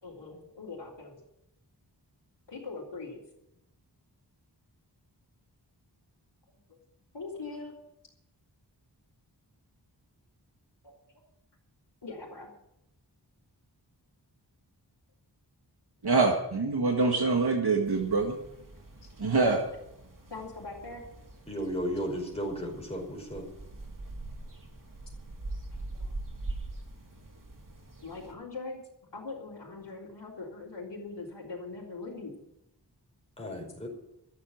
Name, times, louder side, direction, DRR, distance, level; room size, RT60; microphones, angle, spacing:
voice 1, 0.0-1.2 2.5-3.2 6.7-6.8 7.1-7.7 10.8-10.9 12.0-12.5 19.0-19.1 20.3-21.0 25.7-26.1 28.0-28.8 29.1-32.3, left 3 dB, 80° left, -7 dB, 3.7 m, -41 dB
voice 2, 16.0-18.3 19.2-19.6, right 3 dB, 65° right, 1 dB, 1.9 m, -25 dB
sound 1, 17.8-28.3, right 2 dB, 50° right, 2.7 m, -43 dB
voice 3, 21.5-23.4 33.4-33.9, equal, 15° left, -1 dB, 5.1 m, -34 dB
13.0 x 8.3 x 9.3 m, 0.82 s
wide cardioid pair, 45°, 42 cm